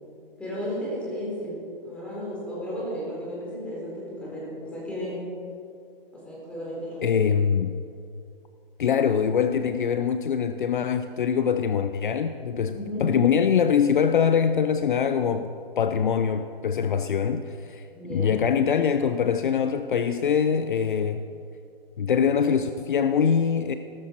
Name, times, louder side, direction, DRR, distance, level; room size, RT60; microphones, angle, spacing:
voice 1, 0.4-5.2 6.1-7.2 12.7-13.1 17.9-18.5, equal, 5° left, -6 dB, 3.8 m, -34 dB
voice 2, 7.0-7.7 8.8-15.5 15.8-17.8 18.1-21.2 22.0-23.7, left 7 dB, 55° left, 9 dB, 0.7 m, -23 dB
17.0 x 13.5 x 4.5 m, 2.4 s
hypercardioid pair, 150°, 30 cm